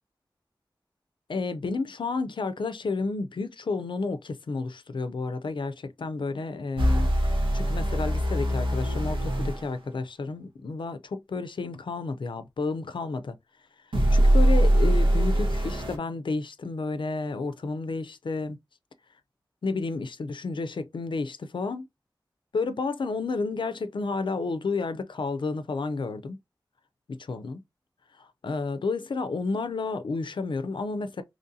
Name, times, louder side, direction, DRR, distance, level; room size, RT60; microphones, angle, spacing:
voice 1, 1.3-13.4 14.1-18.6 19.6-21.9 22.5-26.4 27.1-27.6 28.2-31.2, left 3 dB, 75° left, 0.5 m, -31 dB
sound 1, 6.8-9.6 13.9-16.0, right 1 dB, 90° right, 0.9 m, -22 dB
3.1 x 2.7 x 3.8 m
wide cardioid pair, 65°, 8 cm